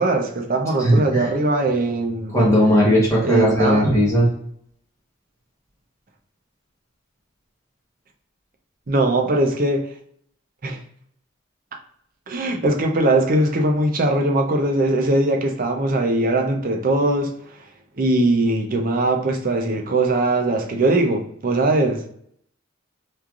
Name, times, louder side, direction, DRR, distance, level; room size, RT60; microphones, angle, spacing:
voice 1, 0.0-2.4 3.2-3.9 8.9-9.9 10.6-10.8 12.3-17.3 18.0-22.0, right 2 dB, 40° right, 0.5 m, -20 dB
voice 2, 0.8-1.3 2.3-4.3, equal, 15° left, 0.9 m, -17 dB
3.1 x 2.4 x 2.4 m
head